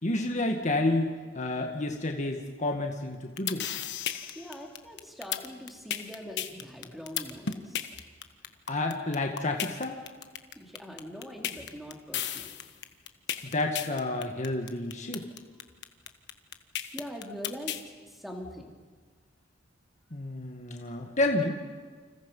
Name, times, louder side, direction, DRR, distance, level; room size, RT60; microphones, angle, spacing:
voice 1, 0.0-3.7 8.7-10.0 13.4-15.3 20.1-21.6, left 2 dB, 40° left, 2 dB, 1.8 m, -30 dB
sound 1, 3.1-17.8, left 10 dB, 60° left, 1.4 m, -34 dB
voice 2, 4.3-7.8 10.5-12.6 16.9-18.7, equal, ahead, 1 dB, 3.3 m, -42 dB
29.0 x 26.5 x 5.5 m, 1.5 s
head